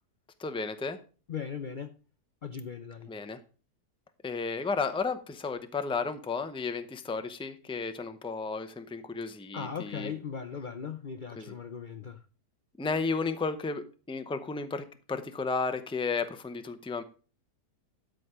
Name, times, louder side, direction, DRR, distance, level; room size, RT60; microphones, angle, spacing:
voice 1, 0.4-1.0 3.1-3.4 4.2-10.1 11.4-11.5 12.8-17.0, left 4 dB, 5° left, 0.5 m, -33 dB
voice 2, 1.3-2.0 2.4-3.1 9.5-12.2, left 6 dB, 65° left, 0.5 m, -38 dB
12.5 x 5.1 x 4.9 m
omnidirectional pair, 1.8 m